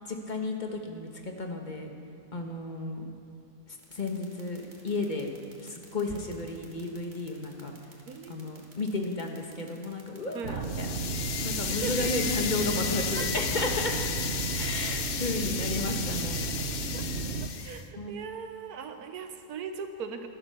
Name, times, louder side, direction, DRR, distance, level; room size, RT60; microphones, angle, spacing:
voice 1, 0.1-1.9 2.3-3.0 3.7-5.3 5.6-7.7 8.3-10.9 11.4-13.9 14.5-16.5 18.0-18.2, left 2 dB, 35° left, 2 dB, 1.2 m, -33 dB
sound 1, 3.8-11.7, right 3 dB, 30° right, 2.0 m, -54 dB
voice 2, 8.1-8.4 10.3-10.6 11.7-12.1 13.2-13.3 16.9-17.1 17.6-20.3, right 6 dB, 85° right, 7 dB, 1.4 m, -39 dB
sound 2, 10.4-17.5, right 5 dB, 55° right, 0.9 m, -34 dB
sound 3, 10.6-17.8, left 7 dB, 85° left, 0.4 m, -33 dB
12.0 x 11.0 x 6.8 m, 2.5 s
omnidirectional pair, 1.6 m